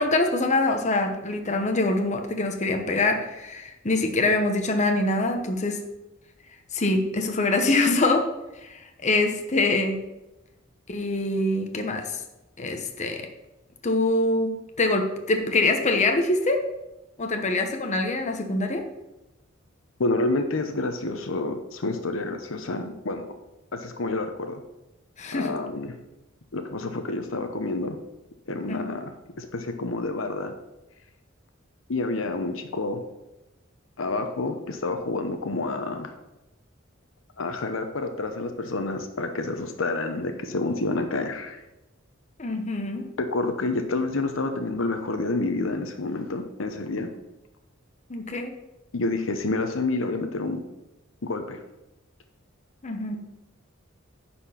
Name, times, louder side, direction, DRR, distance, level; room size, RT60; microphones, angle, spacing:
voice 1, 0.0-5.8 6.7-8.2 8.6-10.0 10.9-12.2 12.6-13.2 13.8-16.6 17.2-18.8 25.2-25.5 28.7-29.0 42.4-43.0 48.1-48.5 52.8-53.2, left 2 dB, 35° left, 4 dB, 0.9 m, -24 dB
voice 2, 20.0-23.3 23.7-24.6 25.3-25.9 26.5-28.0 28.5-30.5 31.9-33.0 34.0-36.1 37.4-41.6 43.2-47.1 48.9-50.6 51.2-51.6, left 2 dB, 70° left, 7 dB, 0.8 m, -28 dB
9.9 x 4.4 x 5.7 m, 0.97 s
head